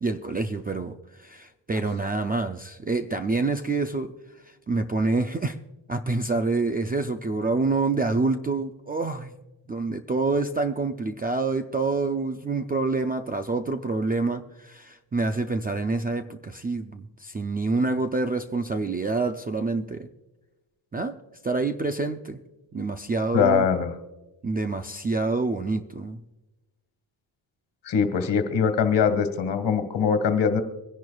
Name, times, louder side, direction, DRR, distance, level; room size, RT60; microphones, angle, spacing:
voice 1, 0.0-4.1 4.7-5.6 5.9-9.3 9.7-20.1 20.9-21.2 21.4-22.4 22.7-23.6 24.4-26.2, right 3 dB, 20° right, 0.4 m, -27 dB
voice 2, 23.3-23.9 27.8-30.6, left 6 dB, 55° left, 1.8 m, -22 dB
24.5 x 10.5 x 2.3 m
wide cardioid pair, 160°, 49 cm